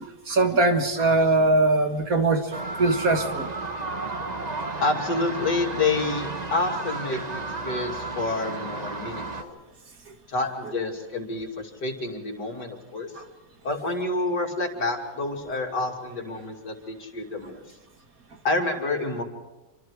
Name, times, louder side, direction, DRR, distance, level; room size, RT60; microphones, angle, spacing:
voice 1, 0.3-2.5 2.8-3.5 13.2-13.3, right 2 dB, 50° right, 6 dB, 2.1 m, -21 dB
sound 1, 2.5-9.4, right 3 dB, 25° right, 1.4 m, -33 dB
voice 2, 4.8-9.6 10.3-13.1 13.6-17.6 18.4-19.2, left 3 dB, 65° left, 2 dB, 3.3 m, -28 dB
27.5 x 25.0 x 4.9 m, 1.1 s
omnidirectional pair, 1.9 m